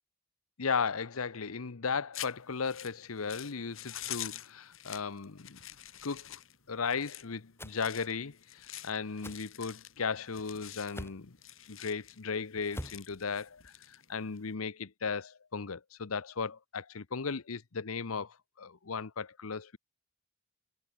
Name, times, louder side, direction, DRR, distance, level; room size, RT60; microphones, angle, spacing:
voice 1, 0.6-5.6 6.0-6.4 6.7-11.3 11.7-13.6 14.1-19.8, left 5 dB, 85° left, 0.9 m, -36 dB
sound 1, 2.1-14.5, left 12 dB, 70° left, 5.3 m, -47 dB
sound 2, 7.6-7.8 9.2-9.4 10.9-11.2 12.7-13.0, left 1 dB, 10° left, 3.7 m, -42 dB
head